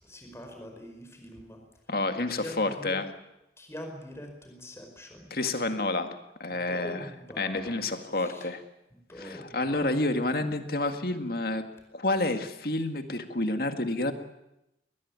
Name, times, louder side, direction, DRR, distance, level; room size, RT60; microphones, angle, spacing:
voice 1, 0.0-1.6 2.3-3.0 3.6-5.3 6.5-7.7 8.2-8.5 9.1-10.0, equal, 15° left, 4 dB, 5.0 m, -44 dB
voice 2, 1.9-3.1 5.3-7.1 7.4-8.6 9.2-11.7 11.9-14.1, left 2 dB, 55° left, 7 dB, 2.0 m, -29 dB
21.0 x 19.5 x 9.6 m, 0.90 s
head